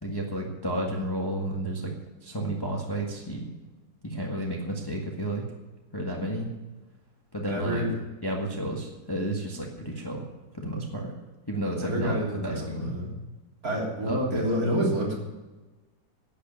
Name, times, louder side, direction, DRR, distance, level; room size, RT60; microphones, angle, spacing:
voice 1, 0.0-1.9 2.2-3.5 4.0-5.4 5.9-6.5 7.3-7.8 8.2-10.3 10.5-11.1 11.5-12.1 12.4-12.9 14.0-14.5, right 1 dB, 15° left, -1 dB, 1.6 m, -31 dB
voice 2, 7.5-8.0 11.8-13.1 13.6-15.1, equal, 50° right, -3 dB, 3.9 m, -28 dB
11.0 x 8.4 x 9.4 m, 1.2 s
omnidirectional pair, 2.0 m